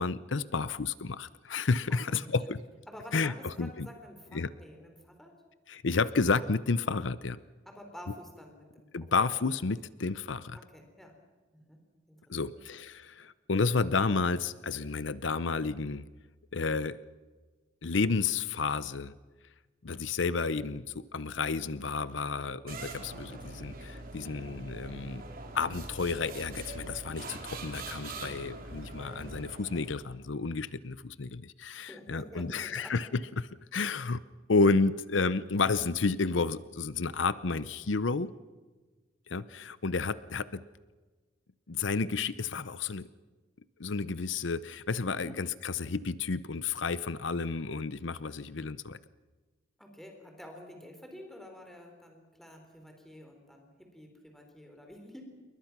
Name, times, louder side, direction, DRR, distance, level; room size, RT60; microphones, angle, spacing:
voice 1, 0.0-2.6 3.1-3.9 4.3-4.5 5.7-7.4 8.9-10.6 12.3-16.0 16.5-17.0 17.8-19.1 19.8-25.2 25.5-33.1 33.4-34.2 34.5-38.3 39.3-40.6 41.7-43.1 43.8-49.0, left 4 dB, 70° left, 16 dB, 0.7 m, -31 dB
voice 2, 1.9-2.4 2.9-5.4 7.7-8.9 9.7-9.8 10.5-11.2 11.5-11.8 12.1-12.2 12.5-12.6 28.1-28.5 31.8-32.9 45.1-45.4 49.8-55.2, left 1 dB, ahead, 3 dB, 3.9 m, -49 dB
sound 1, 22.7-30.1, right 2 dB, 50° right, 4.1 m, -43 dB
29.0 x 22.5 x 6.0 m, 1.3 s
head